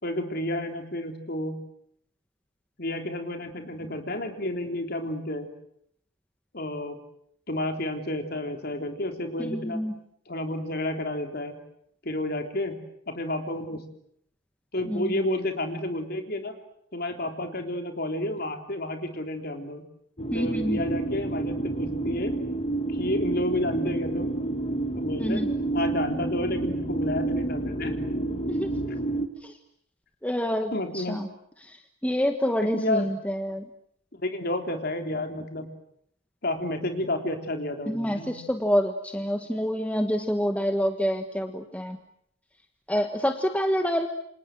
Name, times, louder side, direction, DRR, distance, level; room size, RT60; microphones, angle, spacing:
voice 1, 0.0-1.6 2.8-5.5 6.5-7.0 7.5-9.8 10.3-11.6 12.0-13.8 14.7-16.5 16.9-19.8 20.3-22.4 22.9-24.4 25.0-25.4 25.7-27.9 30.7-31.2 32.6-33.1 34.1-35.7 36.4-38.4, left 1 dB, 45° left, 5 dB, 3.5 m, -31 dB
voice 2, 9.4-10.0 14.9-15.2 20.3-20.8 25.2-25.5 28.5-28.7 29.4-29.6 30.2-31.3 31.6-33.7 37.9-42.0 42.9-44.1, equal, 5° left, 6 dB, 1.4 m, -27 dB
sound 1, 20.2-29.3, right 2 dB, 30° left, 1.6 m, -29 dB
28.5 x 26.0 x 7.7 m, 0.73 s
head